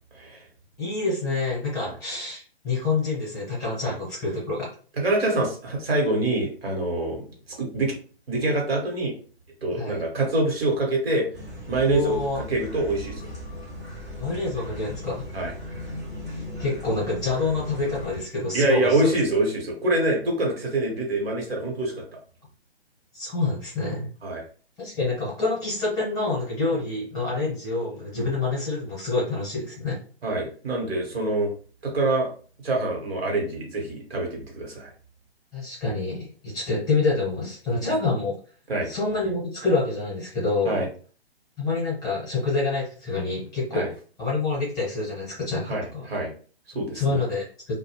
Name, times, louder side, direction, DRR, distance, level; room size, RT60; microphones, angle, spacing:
voice 1, 0.8-4.7 9.8-10.0 11.8-12.4 14.2-15.3 16.6-19.1 23.1-24.1 24.8-30.0 35.5-38.3 38.9-40.7 41.6-43.9 44.2-46.1 46.9-47.4, left 3 dB, 10° left, -6 dB, 1.0 m, -27 dB
voice 2, 5.0-7.2 7.6-7.9 8.3-9.1 9.6-11.3 11.7-13.3 15.3-15.5 18.5-22.2 24.2-24.4 28.1-28.3 30.2-31.5 31.8-32.3 32.6-34.9 38.7-38.9 40.6-40.9 43.7-43.9 45.7-46.3 46.7-47.2, right 2 dB, 65° right, 0 dB, 1.1 m, -25 dB
sound 1, 11.3-18.2, left 1 dB, 15° right, 0.4 m, -38 dB
2.2 x 2.0 x 2.9 m, 0.40 s
figure-of-eight pair, 135°, 32 cm